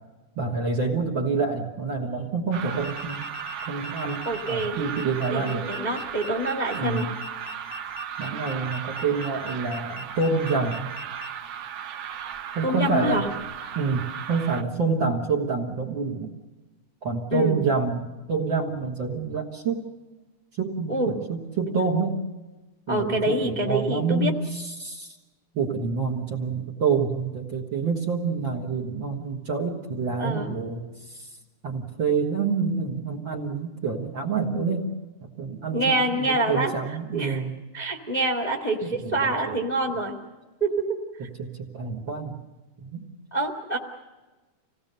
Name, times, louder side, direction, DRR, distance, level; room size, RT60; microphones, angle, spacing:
voice 1, 0.4-3.2 3.7-5.7 6.7-7.1 8.2-10.9 12.6-13.2 13.8-16.3 17.0-19.8 20.6-22.2 22.9-25.1 25.6-30.8 31.6-34.9 35.2-37.6 39.0-39.1 39.5-39.6 41.4-42.3 42.8-43.0, right 4 dB, 45° right, 0 dB, 1.9 m, -27 dB
sound 1, 2.5-14.6, right 9 dB, 80° right, 1.1 m, -36 dB
sound 2, 2.8-11.3, left 3 dB, 70° left, 2.0 m, -42 dB
voice 2, 4.2-4.8 5.3-7.1 12.6-13.2 17.3-17.6 20.9-21.1 22.9-24.3 30.2-30.5 35.7-37.4 37.7-40.2 40.6-41.0 43.3-43.8, right 1 dB, 20° left, 0 dB, 1.2 m, -26 dB
27.0 x 18.0 x 6.8 m, 1.2 s
omnidirectional pair, 3.7 m